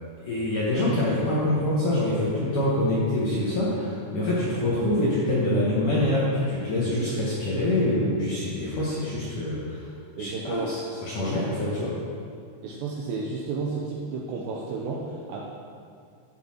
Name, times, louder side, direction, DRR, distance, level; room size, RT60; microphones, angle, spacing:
voice 1, 0.2-9.9 10.2-12.0, left 1 dB, 65° left, -7 dB, 2.2 m, -25 dB
voice 2, 10.2-10.7 12.6-15.4, right 4 dB, 80° right, -2 dB, 2.5 m, -32 dB
14.0 x 5.6 x 5.8 m, 2.4 s
omnidirectional pair, 5.8 m